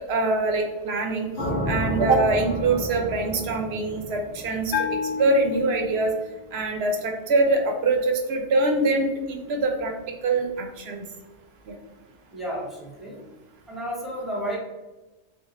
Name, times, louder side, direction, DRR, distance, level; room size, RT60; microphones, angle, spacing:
voice 1, 0.1-1.3 1.7-4.7 5.2-6.1 6.5-9.9 10.2-11.0 11.7-11.8, right 2 dB, 65° right, 3 dB, 0.8 m, -23 dB
sound 1, 1.4-5.4, equal, 85° left, 1.2 m, -31 dB
Bell, 4.7-6.3, left 7 dB, 65° left, 0.8 m, -30 dB
voice 2, 12.3-13.2 13.7-14.6, equal, ahead, -5 dB, 1.0 m, -32 dB
3.5 x 2.7 x 2.8 m, 1.1 s
omnidirectional pair, 1.2 m